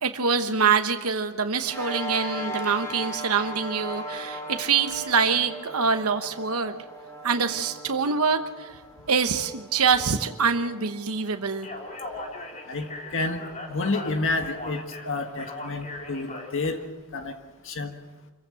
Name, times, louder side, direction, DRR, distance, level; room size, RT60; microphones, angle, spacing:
voice 1, 0.0-6.7 7.2-8.7 9.1-11.7, right 5 dB, 75° right, 7 dB, 1.1 m, -25 dB
sound 1, 1.7-14.4, equal, 15° left, 2.6 m, -39 dB
Speech, 11.5-16.9, left 2 dB, 35° left, 3.4 m, -39 dB
voice 2, 12.7-16.8 17.1-17.4 17.6-17.9, left 3 dB, 60° left, 5 dB, 1.7 m, -29 dB
26.0 x 15.5 x 7.6 m, 1.2 s
head